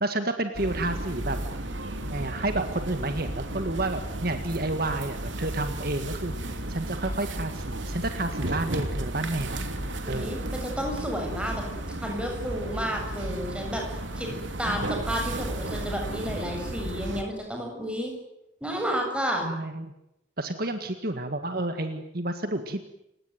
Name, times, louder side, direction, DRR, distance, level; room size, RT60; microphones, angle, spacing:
voice 1, 0.0-1.4 2.1-9.6 10.1-10.5 14.7-14.8 19.4-19.9 20.4-22.9, right 2 dB, 50° right, 7 dB, 1.9 m, -30 dB
sound 1, 0.5-17.2, right 1 dB, 70° right, 3.2 m, -34 dB
voice 2, 10.0-11.6 12.0-13.8 14.1-14.3 14.6-18.1 18.6-19.4, equal, 5° right, 1 dB, 7.5 m, -31 dB
30.0 x 18.0 x 9.4 m, 0.88 s
head